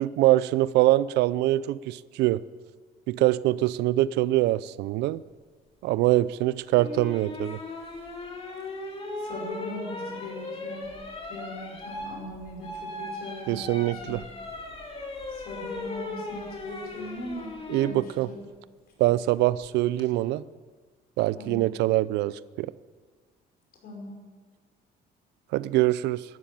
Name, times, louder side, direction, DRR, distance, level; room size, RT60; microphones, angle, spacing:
voice 1, 0.0-2.4 3.1-5.2 5.8-7.6 13.5-14.2 17.7-18.3 19.0-20.4 21.2-22.7 25.5-26.2, right 16 dB, 85° right, 18 dB, 0.5 m, -24 dB
sound 1, 6.8-18.0 19.6-20.0, left 2 dB, 35° left, 3.0 m, -38 dB
voice 2, 9.2-10.9 11.3-13.7 14.0-14.1 15.3-17.5 17.8-18.4 21.4-21.7 23.8-24.2, left 1 dB, 65° left, 0 dB, 5.5 m, -39 dB
13.0 x 11.5 x 9.1 m, 1.5 s
cardioid pair, 110°, 17 cm